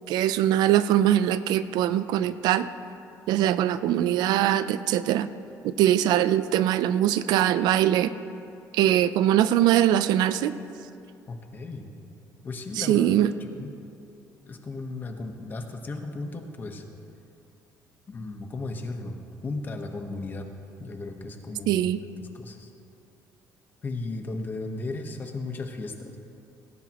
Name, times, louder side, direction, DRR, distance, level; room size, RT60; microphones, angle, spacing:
voice 1, 0.1-2.7 3.3-5.3 5.6-8.1 8.7-10.5 12.8-13.3 21.7-22.0, right 12 dB, 90° right, 13 dB, 0.5 m, -22 dB
voice 2, 11.3-11.9 12.4-13.7 14.5-16.8 18.1-19.2 19.4-20.5 20.8-21.9 22.2-22.7 23.8-26.2, left 3 dB, 30° left, 4 dB, 1.1 m, -35 dB
17.5 x 16.5 x 3.0 m, 2.6 s
cardioid pair, 160°, 7 cm